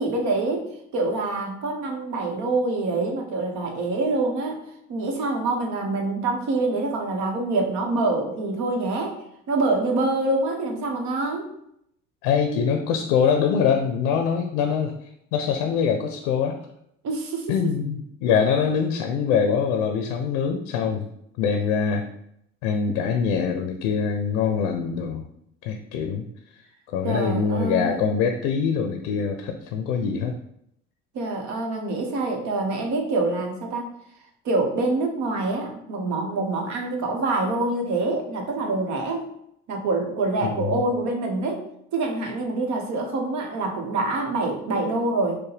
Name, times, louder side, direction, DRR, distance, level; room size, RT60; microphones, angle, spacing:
voice 1, 0.0-4.6 4.9-9.2 9.5-11.5 17.0-17.7 27.0-28.1 31.1-33.9 34.4-39.3 39.7-41.6 41.9-45.4, right 2 dB, 60° right, 2 dB, 1.0 m, -26 dB
voice 2, 12.2-16.6 17.5-21.1 21.4-22.1 22.6-25.3 25.6-26.3 26.9-30.4 40.6-40.8, left 6 dB, 75° left, 5 dB, 0.5 m, -24 dB
4.4 x 2.1 x 3.2 m, 0.74 s
hypercardioid pair, 65°, 32 cm